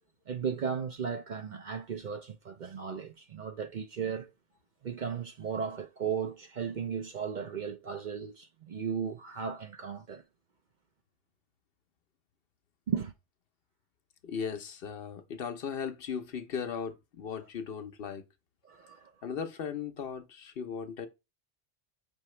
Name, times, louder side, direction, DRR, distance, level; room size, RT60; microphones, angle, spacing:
voice 1, 0.3-4.3 4.8-10.2 12.9-13.1 18.6-19.1, right 7 dB, 50° right, 0.6 m, -35 dB
voice 2, 14.2-18.2 19.2-21.1, left 7 dB, 60° left, 0.9 m, -37 dB
5.5 x 2.8 x 3.1 m
omnidirectional pair, 1.2 m